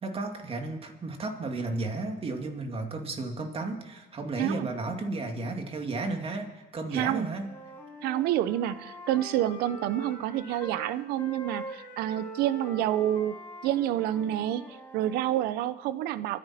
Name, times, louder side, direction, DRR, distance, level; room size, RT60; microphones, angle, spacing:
voice 1, 0.0-7.5, right 2 dB, 35° right, 4 dB, 2.4 m, -33 dB
voice 2, 6.9-7.3 8.0-13.3 13.6-14.6 14.9-16.4, right 12 dB, 80° right, 16 dB, 0.8 m, -28 dB
Wind instrument woodwind instrument, 7.3-10.9 11.2-15.4, right 1 dB, 10° left, 6.4 m, -43 dB
28.5 x 10.5 x 4.3 m, 1.3 s
cardioid pair, 100°, 16 cm